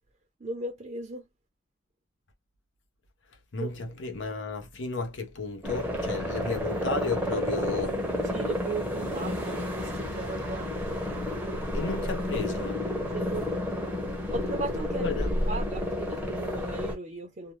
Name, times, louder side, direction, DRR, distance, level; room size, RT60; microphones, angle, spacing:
voice 1, 0.4-1.2 3.6-3.7 8.3-11.0 13.1-13.6 14.3-15.2 15.5-17.5, right 3 dB, 40° right, 0.6 m, -37 dB
voice 2, 3.5-8.0 11.7-12.8 15.0-15.3, left 4 dB, 65° left, 0.8 m, -33 dB
sound 1, 5.6-17.0, left 1 dB, 10° right, 0.7 m, -31 dB
2.6 x 2.2 x 3.0 m
head